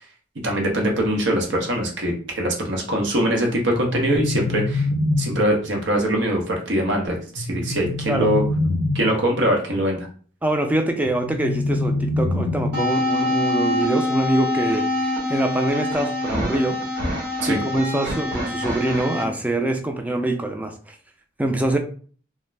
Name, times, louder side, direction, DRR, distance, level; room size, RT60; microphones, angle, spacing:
voice 1, 0.4-4.9 5.2-8.4 8.9-10.1 17.4-17.6, right 1 dB, 75° right, 1 dB, 0.8 m, -22 dB
sound 1, 3.7-5.7 7.4-9.3 11.1-13.0, left 2 dB, 85° left, 0.5 m, -25 dB
voice 2, 10.4-16.8 17.5-21.0 21.4-21.8, right 1 dB, 10° right, 5 dB, 0.3 m, -24 dB
sound 2, 12.7-19.2, left 1 dB, 55° right, 1.0 m, -25 dB
2.4 x 2.1 x 3.2 m, 0.43 s
head